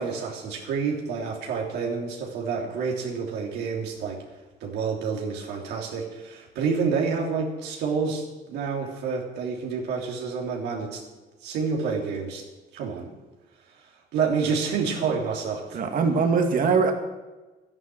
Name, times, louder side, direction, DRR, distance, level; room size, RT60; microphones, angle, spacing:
voice 1, 0.0-4.2 4.6-11.0 11.4-12.5 12.7-13.1 14.1-15.8, right 5 dB, 80° right, -1 dB, 3.2 m, -28 dB
voice 2, 15.7-16.9, right 5 dB, 55° right, 4 dB, 2.2 m, -21 dB
12.0 x 11.0 x 7.9 m, 1.2 s
cardioid pair, 110°, 17 cm